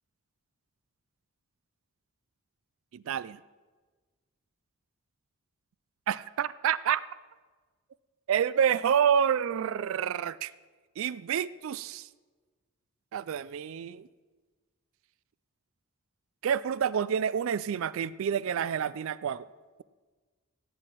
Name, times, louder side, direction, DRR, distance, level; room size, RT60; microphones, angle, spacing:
voice 1, 2.9-3.4 6.1-7.0 8.3-10.5 11.0-12.1 13.1-14.1 16.4-19.5, right 8 dB, 65° right, 18 dB, 0.3 m, -28 dB
16.5 x 9.1 x 4.6 m, 1.4 s
head